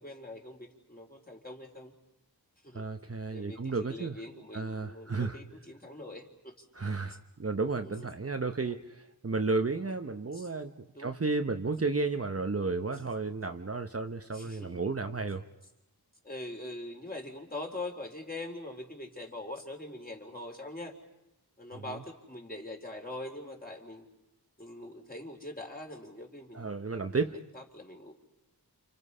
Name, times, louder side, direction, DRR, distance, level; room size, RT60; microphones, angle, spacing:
voice 1, 0.0-1.9 2.6-2.8 3.3-7.2 7.8-8.1 8.6-8.7 10.3-10.5 10.9-11.1 14.3-14.8 16.2-20.9 21.6-24.1 24.6-26.7 27.3-28.2, left 1 dB, 25° left, 1 dB, 3.9 m, -43 dB
voice 2, 2.7-4.2 4.5-5.4 6.8-15.4 21.9-22.0 26.5-27.3, right 3 dB, 40° right, 6 dB, 1.0 m, -33 dB
29.5 x 28.0 x 5.6 m, 0.90 s
wide cardioid pair, 75°, 38 cm